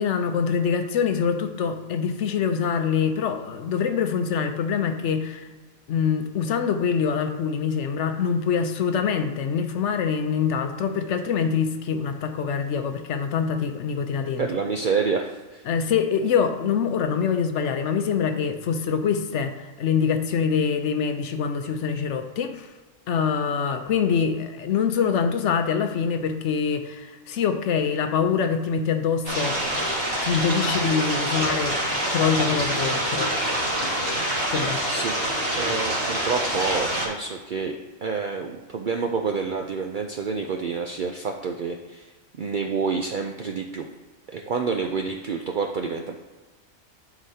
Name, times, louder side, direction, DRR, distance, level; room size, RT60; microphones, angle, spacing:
voice 1, 0.0-5.5 5.9-14.5 15.7-22.7 23.1-29.9 30.2-33.3 34.5-34.8, left 6 dB, 70° left, 7 dB, 0.9 m, -25 dB
voice 2, 14.4-15.6 34.9-35.3 35.6-42.1 42.4-43.9 44.3-46.2, right 5 dB, 65° right, 3 dB, 0.5 m, -28 dB
sound 1, 29.2-37.1, right 1 dB, 45° right, 2.1 m, -26 dB
11.0 x 4.9 x 2.8 m, 1.3 s
omnidirectional pair, 1.4 m